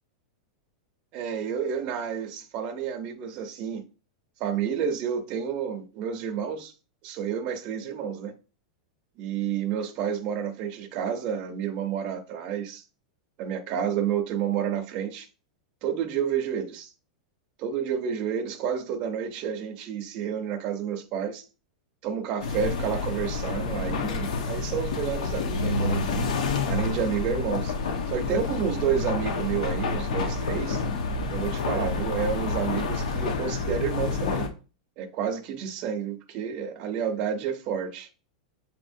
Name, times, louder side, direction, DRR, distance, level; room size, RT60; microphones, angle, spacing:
voice 1, 1.1-3.8 4.4-6.7 7.0-8.3 9.2-12.8 13.4-15.3 15.8-16.9 17.6-21.5 22.0-26.2 26.6-27.7 28.1-30.8 31.3-34.5 35.0-38.1, right 8 dB, 30° right, 0.7 m, -30 dB
sound 1, 22.4-34.5, left 4 dB, 75° left, 0.9 m, -28 dB
7.1 x 2.8 x 2.6 m
supercardioid pair, 180°, 4 cm